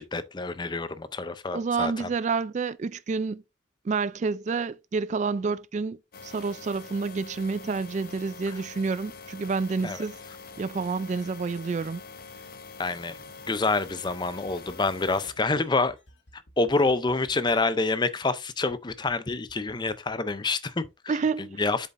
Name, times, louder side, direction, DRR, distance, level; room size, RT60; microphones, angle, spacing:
voice 1, 0.0-2.1 8.5-8.6 9.8-10.1 12.8-13.2 13.5-16.0 16.3-21.9, left 3 dB, 20° left, 0.5 m, -27 dB
voice 2, 1.5-3.4 3.9-6.0 6.2-10.1 10.6-12.0 21.1-21.6, right 4 dB, 35° right, 0.3 m, -29 dB
sound 1, 6.1-15.3, left 4 dB, 50° left, 0.8 m, -45 dB
sound 2, 13.2-18.4 18.7-19.1 19.5-20.9, left 1 dB, 70° left, 1.6 m, -55 dB
8.2 x 6.9 x 2.5 m
head